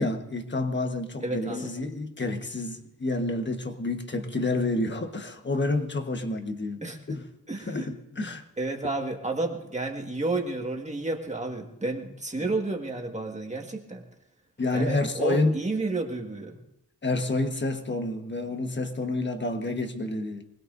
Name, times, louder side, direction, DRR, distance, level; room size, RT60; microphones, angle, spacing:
voice 1, 0.0-6.8 7.1-7.2 7.7-8.4 14.6-15.6 17.0-20.4, left 2 dB, 35° left, 1.4 m, -29 dB
voice 2, 1.2-1.7 6.8-7.0 7.5-7.9 8.6-14.0 14.7-16.6, right 2 dB, 20° right, 1.8 m, -31 dB
25.0 x 20.0 x 2.7 m
wide cardioid pair, 130°, 34 cm